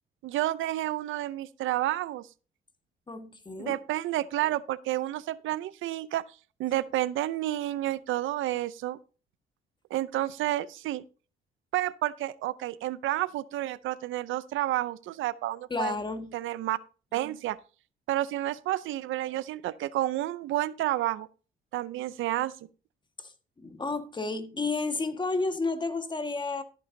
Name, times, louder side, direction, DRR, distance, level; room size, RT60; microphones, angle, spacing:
voice 1, 0.2-2.3 3.6-6.3 6.6-9.0 9.9-11.0 11.7-16.0 16.3-16.8 17.1-17.6 18.1-21.3 21.7-22.5, right 15 dB, 85° right, 0.6 m, -30 dB
voice 2, 3.1-3.8 15.7-16.4 23.2-23.3 23.6-26.6, left 3 dB, 25° left, 1.6 m, -31 dB
14.0 x 8.4 x 2.7 m
cardioid pair, 90°, 20 cm